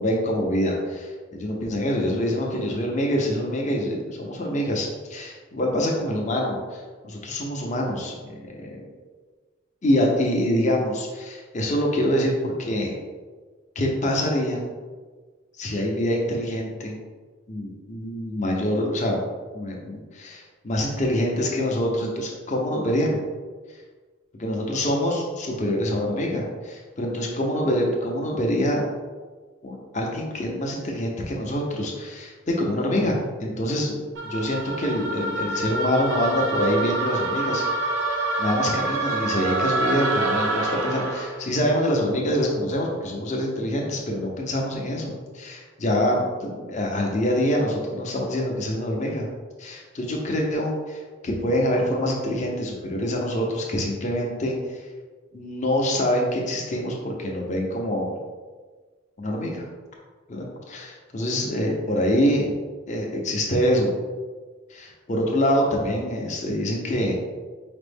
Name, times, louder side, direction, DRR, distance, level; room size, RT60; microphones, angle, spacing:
voice 1, 0.0-8.2 8.5-8.8 9.8-13.0 13.8-14.6 15.6-17.0 17.5-19.2 19.5-23.2 24.4-28.9 29.6-37.7 38.4-49.3 49.6-54.8 55.3-58.2 59.2-59.6 60.3-62.6 62.9-63.9 64.7-67.2, equal, 35° left, 0 dB, 0.6 m, -25 dB
sound 1, 34.1-41.4, right 2 dB, 70° right, 0.6 m, -26 dB
5.0 x 2.0 x 3.4 m, 1.4 s
head